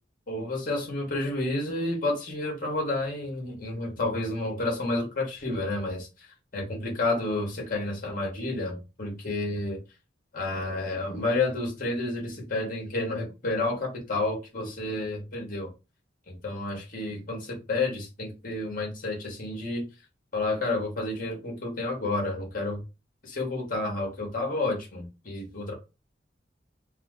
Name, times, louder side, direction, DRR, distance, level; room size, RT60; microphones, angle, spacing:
voice 1, 0.3-6.1 6.5-9.8 10.3-15.7 16.3-19.8 20.3-22.8 23.2-25.7, left 2 dB, 50° left, 1.9 m, -30 dB
4.7 x 2.2 x 3.8 m
head